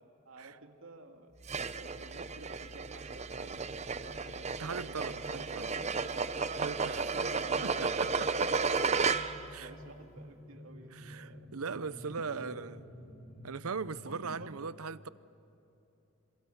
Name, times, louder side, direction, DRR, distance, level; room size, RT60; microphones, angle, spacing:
voice 1, 0.0-1.3 1.7-5.8 6.8-9.1 9.6-12.6 14.0-14.7, right 2 dB, 70° right, 2.4 m, -51 dB
sound 1, 1.4-9.5, right 4 dB, 30° right, 0.7 m, -33 dB
sound 2, 2.1-14.5, equal, 35° left, 3.5 m, -52 dB
voice 2, 4.6-5.7 6.5-7.1 7.6-8.5 9.5-9.7 10.9-12.8 13.4-15.1, right 5 dB, 85° right, 0.7 m, -39 dB
27.5 x 26.5 x 7.3 m
head